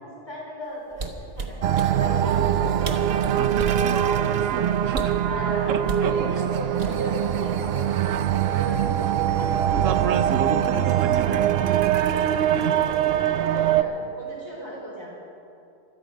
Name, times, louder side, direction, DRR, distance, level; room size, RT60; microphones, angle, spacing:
voice 1, 0.0-1.1 1.4-1.6 1.9-2.8 4.5-4.8 5.3-9.5 10.5-10.7 12.3-15.1, equal, 20° left, -4 dB, 4.3 m, -36 dB
sound 1, 0.9-1.9 2.6-2.7 2.8-3.9 4.9-5.3 5.9-6.1 6.8-7.3 7.6-7.9, right 4 dB, 40° right, 1.3 m, -32 dB
sound 2, 1.6-13.8, right 10 dB, 60° right, 0.7 m, -23 dB
voice 2, 3.3-5.2 5.7-6.6 8.8-8.9 9.7-12.0 12.5-12.8, right 7 dB, 80° right, 10 dB, 1.2 m, -31 dB
25.0 x 9.0 x 5.2 m, 2.6 s
omnidirectional pair, 1.3 m